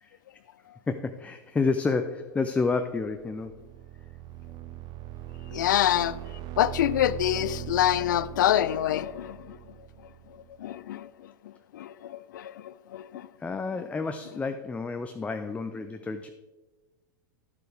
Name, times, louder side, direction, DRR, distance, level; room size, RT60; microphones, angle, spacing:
voice 1, 0.9-3.6 13.4-16.3, left 4 dB, 10° left, 7 dB, 0.5 m, -30 dB
sound 1, 3.0-10.6, right 13 dB, 40° right, 0.6 m, -41 dB
voice 2, 5.5-9.6 10.6-13.3, left 12 dB, 70° left, 17 dB, 0.4 m, -27 dB
11.0 x 7.7 x 3.4 m, 1.1 s
figure-of-eight pair, 95°, 11 cm